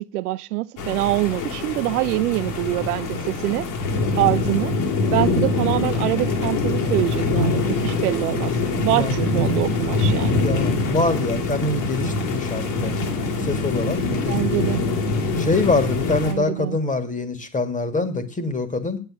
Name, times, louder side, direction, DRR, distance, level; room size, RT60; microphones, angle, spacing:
voice 1, 0.0-3.7 4.1-4.7 5.1-8.6 8.8-10.5 14.3-14.9 16.2-16.8, right 17 dB, 75° right, 0.6 m, -24 dB
sound 1, 0.8-16.3, left 3 dB, 65° left, 3.5 m, -24 dB
voice 2, 10.4-12.9 13.4-14.7 15.4-19.0, left 3 dB, 15° left, 1.9 m, -25 dB
8.7 x 8.2 x 7.6 m
hypercardioid pair, 85°, 46 cm